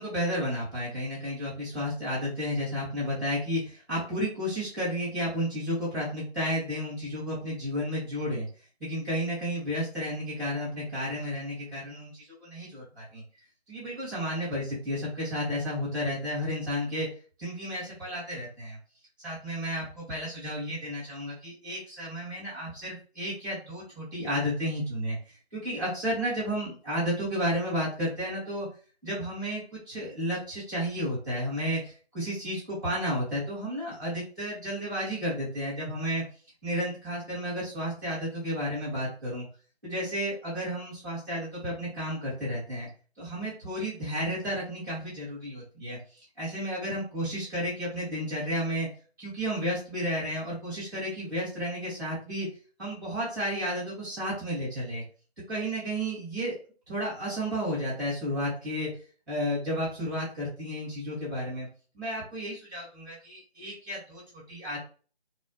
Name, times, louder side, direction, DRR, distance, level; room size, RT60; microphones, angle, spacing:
voice 1, 0.0-8.5 8.8-13.2 13.7-17.1 17.4-18.8 19.2-25.2 25.5-28.7 29.0-36.2 36.6-39.5 39.8-42.9 43.2-46.0 46.4-48.9 49.2-52.5 52.8-55.0 55.5-56.6 56.9-58.9 59.3-61.7 61.9-64.8, equal, 20° right, -10 dB, 2.0 m, -32 dB
4.5 x 2.1 x 3.3 m, 0.39 s
figure-of-eight pair, 175°, 32 cm